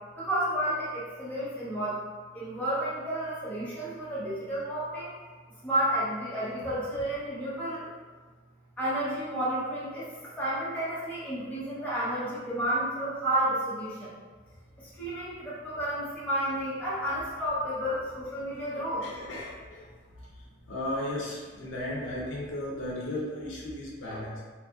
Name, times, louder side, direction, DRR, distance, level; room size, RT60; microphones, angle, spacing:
voice 1, 0.2-2.0 2.3-5.1 5.6-7.9 8.8-14.1 14.8-19.0, right 1 dB, 10° left, -9 dB, 0.7 m, -31 dB
voice 2, 18.5-19.8 20.2-20.3 20.7-24.4, left 1 dB, 85° left, -3 dB, 0.5 m, -35 dB
2.7 x 2.4 x 2.3 m, 1.4 s
head